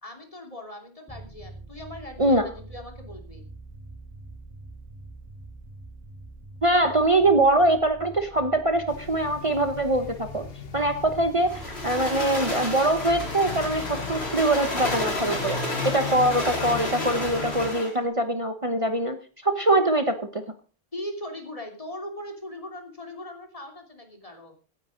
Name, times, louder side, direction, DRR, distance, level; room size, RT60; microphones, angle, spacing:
voice 1, 0.0-3.5 20.9-24.5, left 1 dB, 35° left, 4 dB, 3.0 m, -39 dB
sound 1, 1.1-14.5, right 2 dB, 5° left, 3.6 m, -45 dB
voice 2, 6.6-10.5 10.7-19.2 19.4-20.4, right 1 dB, 30° right, 8 dB, 1.1 m, -23 dB
sound 2, 8.9-17.7, left 7 dB, 65° left, 1.4 m, -37 dB
sound 3, 11.5-18.0, left 1 dB, 90° left, 3.9 m, -31 dB
17.0 x 9.7 x 5.1 m, 0.38 s
omnidirectional pair, 1.1 m